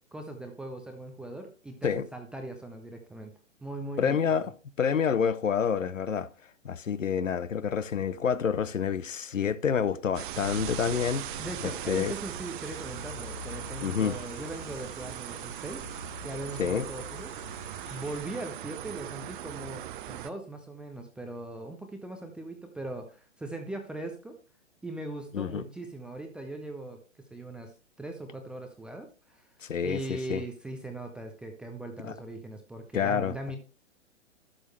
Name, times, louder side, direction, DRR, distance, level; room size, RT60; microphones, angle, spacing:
voice 1, 0.1-3.3 3.6-4.2 11.4-15.9 16.2-17.3 17.9-24.4 24.8-27.7 28.0-29.4 29.8-33.6, right 2 dB, 5° right, 0.4 m, -39 dB
voice 2, 4.0-4.5 4.8-6.3 6.6-11.4 11.9-12.1 13.8-14.2 16.6-16.9 25.3-25.6 29.7-30.4 32.0-32.1 32.9-33.3, left 7 dB, 90° left, 0.6 m, -28 dB
sound 1, 10.1-20.3, right 12 dB, 45° right, 0.7 m, -39 dB
sound 2, 10.8-18.2, left 4 dB, 60° left, 2.4 m, -47 dB
11.5 x 6.3 x 3.2 m
figure-of-eight pair, 115°, 37 cm